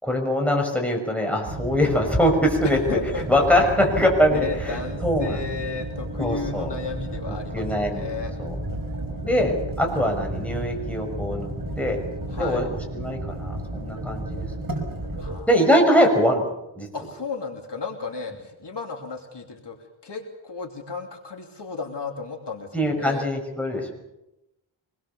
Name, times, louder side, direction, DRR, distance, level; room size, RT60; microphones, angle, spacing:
voice 1, 0.0-2.8 3.2-5.4 6.2-6.7 7.3-8.1 8.4-8.5 9.2-9.5 9.8-12.0 12.4-12.7 12.9-14.5 15.5-16.5 16.8-16.9 22.7-23.9, equal, 5° left, 1 dB, 6.4 m, -22 dB
sound 1, 1.5-15.4, right 1 dB, 45° right, 5.6 m, -32 dB
voice 2, 2.6-3.5 4.3-8.3 12.3-12.7 15.2-15.5 16.1-16.3 16.9-19.8 20.0-23.3, left 4 dB, 55° left, 2 dB, 3.0 m, -34 dB
25.0 x 21.0 x 7.0 m, 0.91 s
wide cardioid pair, 80°, 49 cm